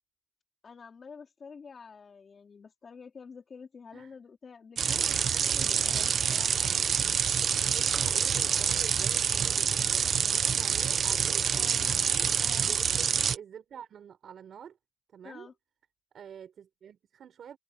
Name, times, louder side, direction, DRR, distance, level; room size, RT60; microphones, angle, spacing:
voice 1, 0.6-5.2 5.4-6.9 11.5-12.7 15.2-15.5, left 5 dB, 45° left, 4.1 m, -49 dB
sound 1, 4.8-13.4, right 7 dB, 65° right, 0.9 m, -27 dB
voice 2, 5.1-5.5 7.6-14.8 15.1-15.5 16.1-17.6, right 8 dB, 80° right, 5.9 m, -48 dB
wide cardioid pair, 170°, 0 cm